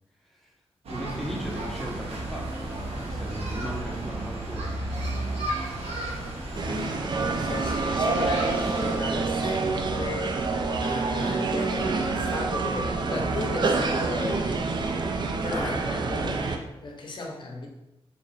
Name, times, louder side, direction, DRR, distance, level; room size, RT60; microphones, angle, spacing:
voice 1, 0.2-0.5 0.9-4.8, equal, ahead, -1 dB, 0.6 m, -38 dB
sound 1, 0.8-9.0, right 1 dB, 85° right, 0.8 m, -33 dB
voice 2, 6.5-17.7, left 2 dB, 50° left, 1 dB, 0.7 m, -36 dB
sound 2, 6.6-16.6, right 3 dB, 50° right, 0.4 m, -27 dB
2.9 x 2.5 x 3.9 m, 0.96 s
wide cardioid pair, 110°, 10 cm